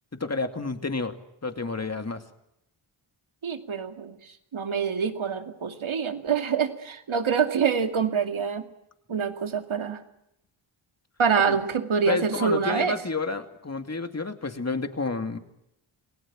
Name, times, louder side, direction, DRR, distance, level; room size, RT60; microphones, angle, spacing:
voice 1, 0.2-1.1 1.4-2.2 11.4-11.6 12.1-15.4, left 3 dB, 30° left, 7 dB, 2.6 m, -30 dB
voice 2, 3.4-8.7 9.1-10.0 11.2-13.0, right 6 dB, 75° right, 7 dB, 2.5 m, -26 dB
28.0 x 18.0 x 7.5 m, 0.84 s
cardioid pair, 60°, 48 cm